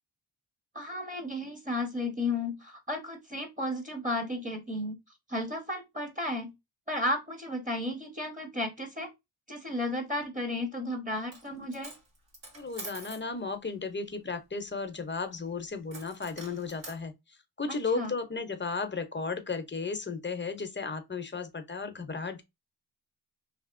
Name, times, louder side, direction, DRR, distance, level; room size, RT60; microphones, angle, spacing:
voice 1, 0.7-5.0 5.3-6.5 6.9-9.1 9.5-11.9 17.7-18.1, left 1 dB, 20° right, 0.8 m, -33 dB
Coin (dropping), 11.2-11.5 11.7-13.3 15.9-17.0, right 2 dB, 75° right, 1.6 m, -45 dB
voice 2, 12.6-17.1 17.6-22.4, left 4 dB, 25° left, 0.6 m, -34 dB
2.8 x 2.8 x 2.4 m
wide cardioid pair, 95°, 44 cm